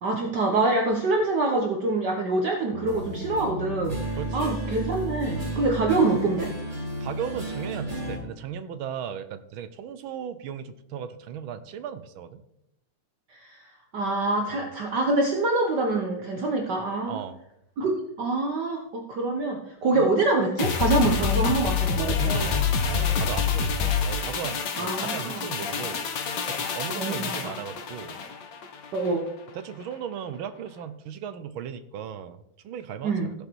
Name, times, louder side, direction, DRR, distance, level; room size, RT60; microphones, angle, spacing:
voice 1, 0.0-4.0 4.3-6.5 13.3-13.6 13.9-17.2 17.8-22.4 24.8-25.5 27.0-27.5 28.9-29.3 33.0-33.3, right 2 dB, 55° right, 2 dB, 1.6 m, -25 dB
sound 1, 2.7-8.2, right 1 dB, 20° right, 4.3 m, -33 dB
voice 2, 4.2-4.6 7.0-12.4 14.6-14.7 17.1-17.4 19.9-20.1 22.2-26.1 26.5-28.2 29.5-33.3, right 8 dB, 75° right, 12 dB, 1.6 m, -36 dB
sound 2, 20.6-29.2 29.5-29.6, left 6 dB, 60° left, 1.7 m, -27 dB
15.5 x 7.0 x 4.5 m, 0.80 s
omnidirectional pair, 2.4 m